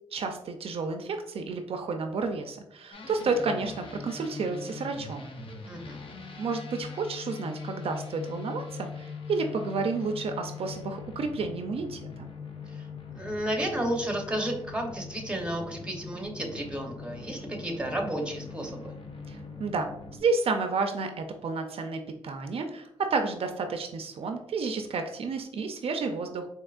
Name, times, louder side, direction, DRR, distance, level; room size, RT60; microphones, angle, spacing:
voice 1, 0.1-5.3 6.4-12.3 19.3-19.9 20.2-26.5, right 4 dB, 65° right, 5 dB, 0.4 m, -31 dB
sound 1, 2.9-20.2, left 5 dB, 60° left, 0.6 m, -42 dB
voice 2, 5.7-6.0 13.1-19.0, right 1 dB, 10° right, 2 dB, 0.8 m, -32 dB
4.4 x 2.8 x 2.4 m, 0.77 s
cardioid pair, 95°, 10 cm